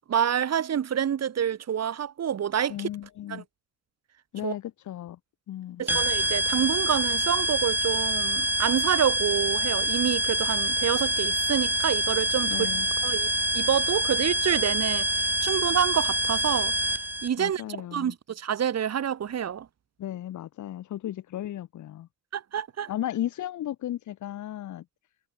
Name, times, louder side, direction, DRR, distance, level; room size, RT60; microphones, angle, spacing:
voice 1, 0.1-2.9 3.3-3.4 4.4-4.5 5.8-12.7 13.0-13.3 13.5-16.7 17.2-17.6 17.9-19.7 22.3-22.9, right 9 dB, 55° right, 4.9 m, -27 dB
voice 2, 2.7-3.4 4.3-5.2 5.5-5.8 12.4-12.9 17.4-18.1 20.0-22.1 22.9-24.8, left 12 dB, 75° left, 2.6 m, -35 dB
sound 1, 5.9-17.3, right 1 dB, 5° right, 2.8 m, -26 dB
cardioid pair, 90°, 30 cm